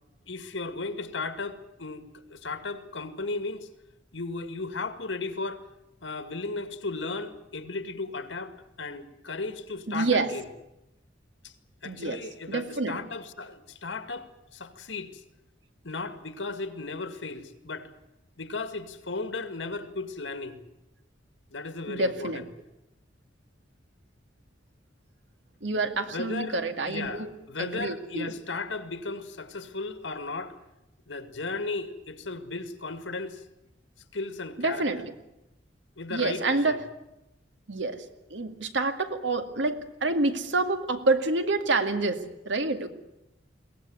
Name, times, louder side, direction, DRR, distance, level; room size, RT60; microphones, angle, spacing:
voice 1, 0.3-2.0 2.3-3.7 4.1-5.7 6.0-10.5 11.4-11.5 11.8-15.2 15.8-17.9 18.4-20.6 21.5-22.5 26.1-26.6 26.9-30.6 31.1-33.4 34.1-35.1 36.0-36.8, left 3 dB, 90° left, 9 dB, 2.1 m, -35 dB
voice 2, 9.9-10.3 11.8-12.2 12.5-13.0 21.9-22.4 25.6-27.3 27.6-28.3 34.6-35.1 36.1-36.8 37.7-38.0 38.3-42.9, right 3 dB, 80° right, 7 dB, 2.2 m, -27 dB
22.5 x 18.0 x 9.6 m, 0.90 s
head